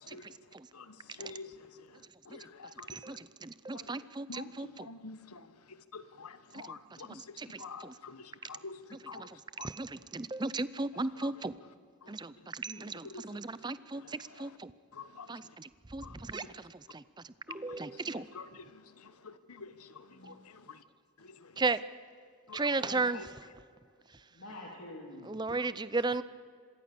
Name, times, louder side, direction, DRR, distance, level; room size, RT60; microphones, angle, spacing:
voice 1, 0.0-0.4 0.7-3.2 3.7-9.7 11.1-11.7 12.0-12.5 13.0-14.6 14.9-15.6 16.0-16.7 17.5-20.8 21.2-21.6 22.5-22.8 23.1-23.3 25.5-25.7, left 4 dB, 90° left, 12 dB, 1.2 m, -49 dB
voice 2, 2.9-4.7 6.7-6.8 7.1-7.9 9.2-9.3 9.6-11.5 12.1-14.7 15.3-16.6 16.9-17.0 17.5-18.2 21.6-21.8 22.5-23.2 25.3-26.2, right 3 dB, 20° right, 16 dB, 0.6 m, -35 dB
voice 3, 12.5-12.9 20.1-20.6 22.7-23.1 24.3-25.3, left 1 dB, 70° left, -2 dB, 3.3 m, -48 dB
26.0 x 22.0 x 6.8 m, 2.1 s
head